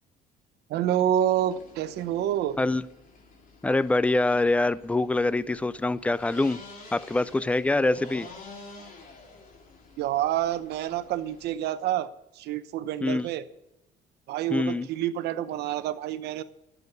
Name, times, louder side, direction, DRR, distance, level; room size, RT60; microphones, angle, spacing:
voice 1, 0.7-2.6 10.0-12.1 12.3-13.4 14.3-16.4, right 11 dB, 75° right, 13 dB, 0.8 m, -28 dB
sound 1, 1.3-11.5, left 3 dB, 55° left, 3.2 m, -49 dB
voice 2, 3.6-6.6 6.9-8.3 13.0-13.3 14.5-14.9, left 2 dB, 10° left, 18 dB, 0.4 m, -24 dB
12.0 x 7.1 x 8.2 m, 0.90 s
cardioid pair, 110°, 17 cm